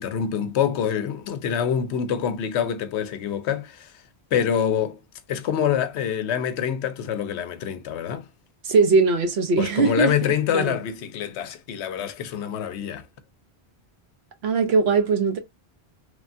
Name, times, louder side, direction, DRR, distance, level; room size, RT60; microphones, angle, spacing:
voice 1, 0.0-3.9 4.3-5.0 5.3-8.3 9.6-13.1, left 8 dB, 80° left, 0.8 m, -26 dB
voice 2, 8.6-10.1 10.5-10.8 14.4-15.4, right 4 dB, 70° right, 1.1 m, -20 dB
3.2 x 2.2 x 2.5 m
omnidirectional pair, 1.1 m